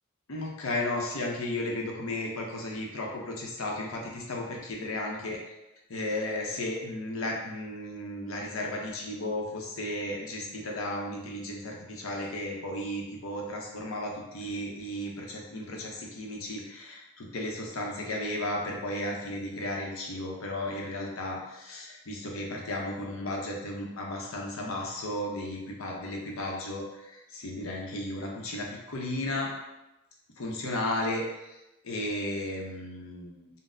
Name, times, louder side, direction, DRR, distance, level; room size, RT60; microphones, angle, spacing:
voice 1, 0.3-5.4 5.9-29.5 30.4-31.2 31.8-33.5, left 1 dB, 80° left, -1 dB, 0.7 m, -34 dB
3.9 x 2.0 x 2.5 m, 0.95 s
head